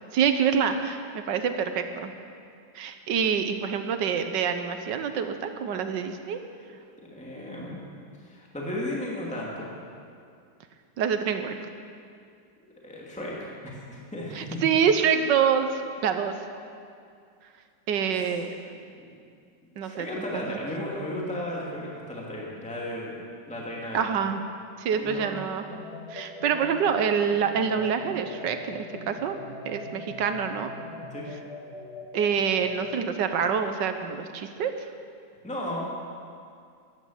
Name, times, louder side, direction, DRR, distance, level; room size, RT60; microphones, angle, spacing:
voice 1, 0.1-2.1 2.7-6.4 11.0-11.5 14.3-16.3 17.9-18.6 19.8-20.1 20.3-20.6 23.9-24.4 24.8-25.6 26.1-29.4 29.6-30.7 32.1-34.7, right 7 dB, 75° right, 8 dB, 1.5 m, -26 dB
voice 2, 7.1-7.9 8.2-9.7 12.8-14.6 19.0-19.1 19.8-23.2 23.5-24.1 24.9-25.4 31.1-31.3 35.4-35.8, left 1 dB, 5° left, -4 dB, 2.4 m, -35 dB
sound 1, 25.7-33.1, left 2 dB, 35° left, 1.6 m, -41 dB
14.5 x 10.5 x 7.5 m, 2.4 s
omnidirectional pair, 2.0 m